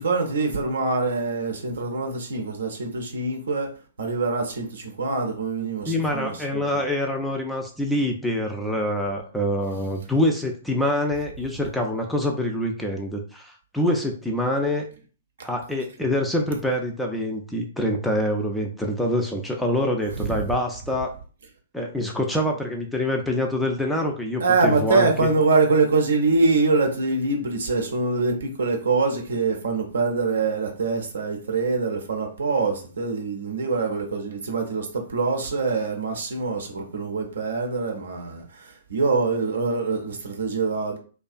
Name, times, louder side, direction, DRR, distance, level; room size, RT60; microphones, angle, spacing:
voice 1, 0.0-3.7 4.0-6.6 15.4-15.5 20.1-20.4 24.4-41.0, right 3 dB, 65° right, 0.5 m, -24 dB
voice 2, 5.9-14.8 15.4-21.1 21.7-25.1, left 1 dB, 5° left, 0.3 m, -25 dB
2.3 x 2.2 x 2.4 m
figure-of-eight pair, 115°, 0 cm